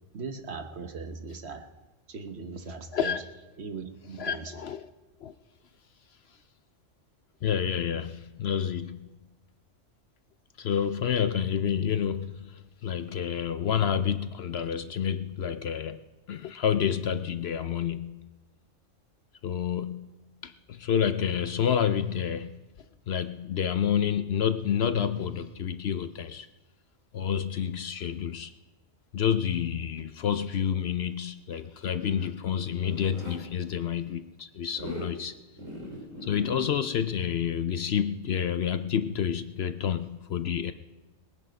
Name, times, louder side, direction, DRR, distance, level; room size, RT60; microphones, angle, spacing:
voice 1, 0.1-1.7 2.1-3.2 3.6-4.5, right 4 dB, 55° right, 7 dB, 1.4 m, -39 dB
voice 2, 2.9-3.2 4.2-4.9 5.2-5.3 7.4-9.1 10.6-16.0 16.3-18.4 19.4-20.1 20.4-22.6 23.1-26.5 27.1-28.5 29.1-35.4 36.2-40.7, left 8 dB, 60° left, 11 dB, 0.8 m, -29 dB
Zipper (clothing), 31.9-33.4 34.7-35.1 35.6-36.7, equal, 75° right, 3.3 m, -41 dB
21.0 x 10.0 x 5.2 m, 1.1 s
omnidirectional pair, 1.3 m